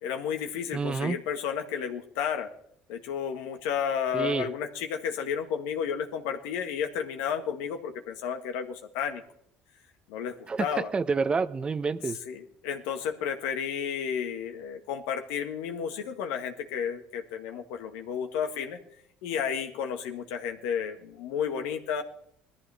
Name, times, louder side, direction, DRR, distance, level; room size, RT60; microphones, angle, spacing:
voice 1, 0.0-2.5 2.9-9.2 10.1-10.9 12.3-18.8 19.2-22.0, left 7 dB, 80° left, 6 dB, 1.6 m, -32 dB
voice 2, 0.7-1.2 4.1-4.5 10.5-12.2, right 4 dB, 30° right, 14 dB, 0.8 m, -28 dB
19.0 x 14.0 x 3.5 m, 0.69 s
supercardioid pair, 85°, 4 cm